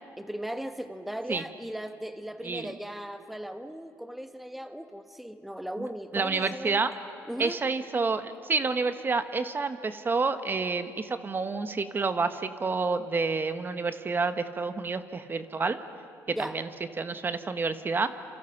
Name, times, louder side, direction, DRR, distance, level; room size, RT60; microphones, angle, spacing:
voice 1, 0.2-6.8 7.3-7.6 16.3-16.6, equal, ahead, 8 dB, 1.1 m, -37 dB
voice 2, 6.1-6.9 7.4-15.8 16.3-16.7 17.0-18.1, right 4 dB, 35° right, 10 dB, 1.3 m, -29 dB
28.5 x 27.5 x 6.0 m, 2.5 s
supercardioid pair, 75°, 6 cm